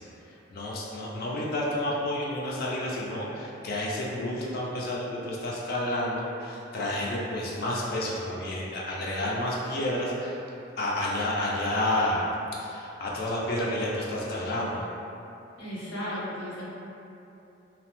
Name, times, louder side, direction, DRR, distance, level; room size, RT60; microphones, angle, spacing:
voice 1, 0.0-10.5 10.8-14.8, left 1 dB, 50° left, -4 dB, 0.3 m, -30 dB
voice 2, 15.6-16.6, equal, 80° left, -9 dB, 0.9 m, -35 dB
2.7 x 2.0 x 2.9 m, 2.9 s
head